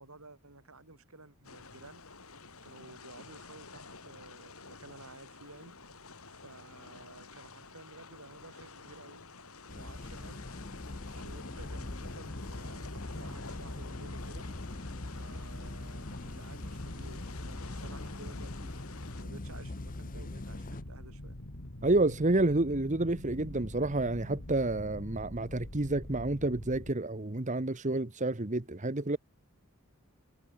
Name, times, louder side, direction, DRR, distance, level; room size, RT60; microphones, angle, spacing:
voice 1, 0.0-2.0 2.6-5.7 6.4-9.3 9.7-10.4 10.9-14.4 15.2-18.7 19.2-21.4, right 2 dB, 75° right, 5.0 m, -53 dB
sound 1, 1.4-19.2, left 4 dB, 75° left, 5.8 m, -50 dB
sound 2, 9.7-20.8, left 2 dB, 40° left, 0.8 m, -43 dB
sound 3, 11.6-26.9, left 1 dB, 55° left, 2.6 m, -45 dB
voice 2, 21.8-29.2, right 2 dB, 35° right, 1.2 m, -29 dB
head